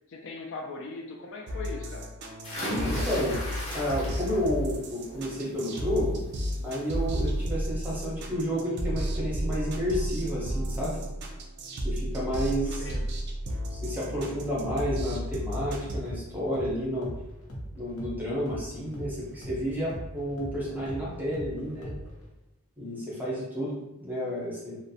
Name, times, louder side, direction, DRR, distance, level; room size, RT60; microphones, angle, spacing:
voice 1, 0.1-2.1 12.6-13.1, left 3 dB, 55° left, 1 dB, 0.3 m, -39 dB
sound 1, 1.5-16.0, equal, 50° right, 0.3 m, -33 dB
sound 2, 2.4-4.5 4.9-5.4 6.7-6.8 7.2-7.3, equal, 30° left, 0.7 m, -35 dB
voice 2, 2.5-3.4 3.7-6.2 6.6-11.0 11.8-12.8 13.7-17.1 17.7-21.9 22.8-24.8, equal, 10° right, -6 dB, 0.6 m, -31 dB
sound 3, 14.6-22.3, equal, 85° left, 0.7 m, -41 dB
2.5 x 2.1 x 2.6 m, 0.99 s
head